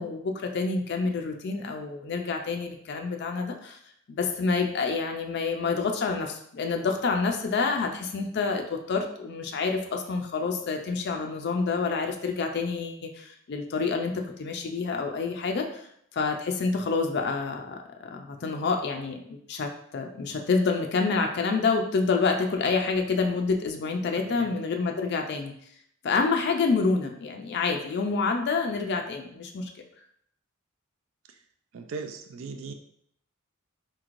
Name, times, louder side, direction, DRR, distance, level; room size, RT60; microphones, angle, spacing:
voice 1, 0.0-3.8 4.1-15.9 16.1-25.5 26.0-29.7, left 4 dB, 50° left, 3 dB, 0.4 m, -28 dB
voice 2, 24.2-24.6 31.3-31.4 31.7-32.7, right 4 dB, 65° right, 6 dB, 0.4 m, -39 dB
4.3 x 3.0 x 2.5 m, 0.69 s
head